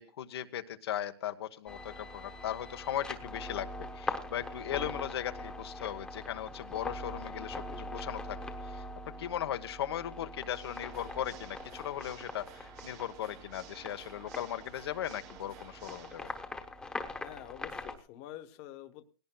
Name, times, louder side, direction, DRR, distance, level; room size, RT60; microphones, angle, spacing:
voice 1, 0.0-8.4 8.7-8.8 9.2-16.3, left 11 dB, 85° left, 8 dB, 1.1 m, -38 dB
sound 1, 1.7-18.0, left 2 dB, 5° left, 1.1 m, -42 dB
Water / Mechanisms, 10.4-16.4, right 10 dB, 25° right, 0.9 m, -54 dB
voice 2, 17.2-19.1, left 12 dB, 35° left, 8 dB, 1.1 m, -47 dB
19.0 x 17.5 x 2.3 m, 0.34 s
supercardioid pair, 170°, 13 cm